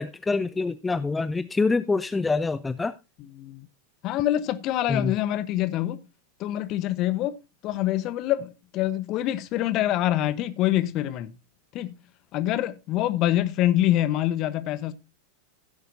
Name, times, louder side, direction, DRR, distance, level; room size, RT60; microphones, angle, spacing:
voice 1, 0.0-2.9 4.9-5.1, left 3 dB, 10° left, 0.4 m, -25 dB
voice 2, 3.2-3.7 4.0-6.0 6.4-7.4 7.6-11.3 11.7-11.9 12.3-14.9, left 13 dB, 40° left, 1.0 m, -25 dB
15.5 x 7.9 x 2.7 m
figure-of-eight pair, 90°, 0 cm